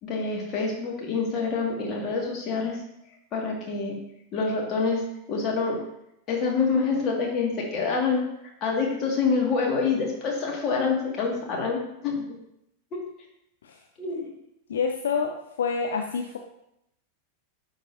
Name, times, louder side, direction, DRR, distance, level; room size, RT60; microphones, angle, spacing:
voice 1, 0.0-2.8 3.3-4.0 4.3-5.0 5.3-5.8 6.3-8.2 8.6-12.4 12.9-13.0 14.0-14.3, left 4 dB, 35° left, -1 dB, 1.9 m, -26 dB
voice 2, 14.7-16.4, left 5 dB, 65° left, 3 dB, 0.5 m, -27 dB
11.0 x 4.0 x 2.6 m, 0.81 s
figure-of-eight pair, 90°, 0 cm